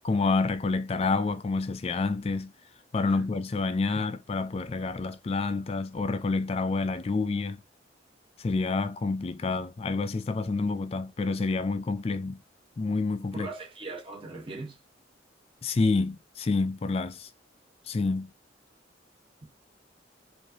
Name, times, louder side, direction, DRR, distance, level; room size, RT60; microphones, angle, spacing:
voice 1, 0.0-2.5 2.9-7.6 8.4-12.4 12.8-13.5 15.6-17.3 17.9-18.3, left 3 dB, 30° left, 0.3 m, -28 dB
voice 2, 13.3-14.8, right 3 dB, 30° right, 1.2 m, -40 dB
4.7 x 2.6 x 2.8 m
head